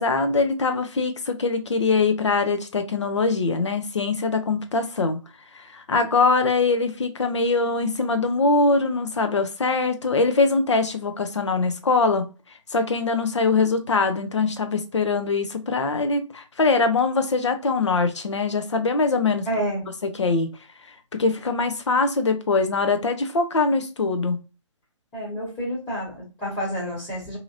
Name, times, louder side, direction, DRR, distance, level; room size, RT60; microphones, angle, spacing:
voice 1, 0.0-5.2 5.5-12.3 12.7-19.5 20.2-20.5 21.2-24.4, left 3 dB, 65° left, 0.6 m, -22 dB
voice 2, 19.4-19.8 25.1-27.4, equal, 20° left, 1.0 m, -29 dB
2.8 x 2.8 x 2.4 m
figure-of-eight pair, 135°, 17 cm